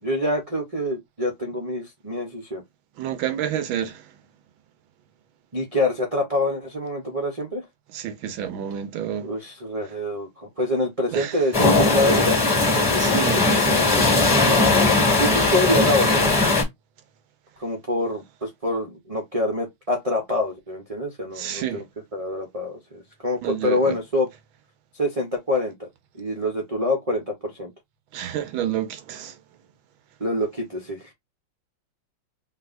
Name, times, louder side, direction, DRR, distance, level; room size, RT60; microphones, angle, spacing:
voice 1, 0.0-2.6 5.5-7.6 9.2-12.4 12.7-14.7 15.1-16.4 17.6-21.8 22.1-24.3 24.9-25.7 26.2-27.7 30.2-31.0, left 1 dB, 25° right, 0.8 m, -26 dB
voice 2, 3.0-4.1 7.9-9.3 11.1-11.7 13.0-13.4 21.4-21.8 23.4-24.0 28.1-29.4, right 10 dB, 85° right, 1.6 m, -29 dB
sound 1, 11.5-16.6, left 3 dB, 20° left, 2.0 m, -19 dB
5.6 x 2.8 x 2.6 m
omnidirectional pair, 2.1 m